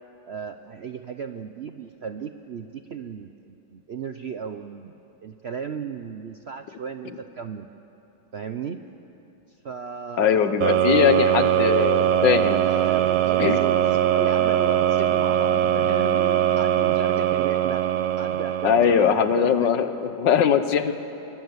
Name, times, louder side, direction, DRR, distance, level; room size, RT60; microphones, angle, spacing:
voice 1, 0.3-4.9 5.2-7.7 8.3-8.8 9.6-11.5 12.4-17.8 18.2-19.7, right 6 dB, 60° right, 8 dB, 0.6 m, -35 dB
voice 2, 10.2-12.7 13.4-13.6 18.6-20.9, left 8 dB, 80° left, 10 dB, 1.8 m, -21 dB
sound 1, 10.6-19.5, right 11 dB, 80° right, 1.5 m, -21 dB
24.0 x 23.5 x 8.1 m, 2.9 s
omnidirectional pair, 1.9 m